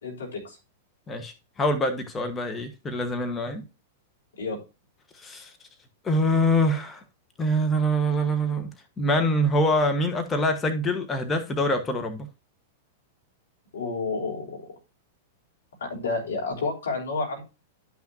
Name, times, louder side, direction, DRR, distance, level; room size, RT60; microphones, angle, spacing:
voice 1, 0.0-0.6 4.4-4.6 13.7-14.6 15.8-17.4, left 3 dB, 80° left, 3.4 m, -30 dB
voice 2, 1.1-3.6 5.2-5.5 6.0-7.0 7.4-8.7 9.0-12.3, equal, 20° left, 1.2 m, -25 dB
11.5 x 5.9 x 2.7 m
hypercardioid pair, 105°, 0 cm